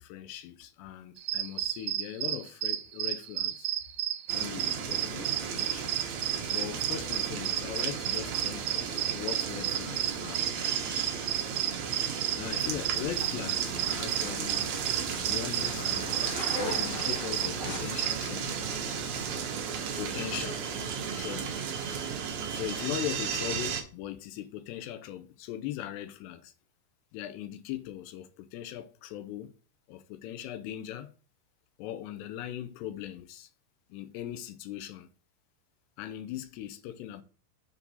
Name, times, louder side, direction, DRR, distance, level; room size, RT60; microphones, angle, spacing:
voice 1, 0.0-3.7 4.3-6.0 6.5-10.4 12.4-14.7 15.2-18.6 19.9-20.6 21.2-21.6 22.5-26.5 27.1-29.5 29.9-31.1 31.8-33.5 33.9-35.1 36.0-37.2, left 12 dB, 80° left, 2.8 m, -39 dB
sound 1, 1.2-18.4, right 12 dB, 70° right, 2.6 m, -32 dB
sound 2, 4.3-23.8, right 6 dB, 90° right, 1.6 m, -35 dB
Zipper (clothing), 12.5-19.3, left 1 dB, 45° left, 0.9 m, -41 dB
7.0 x 4.9 x 3.9 m
omnidirectional pair, 5.0 m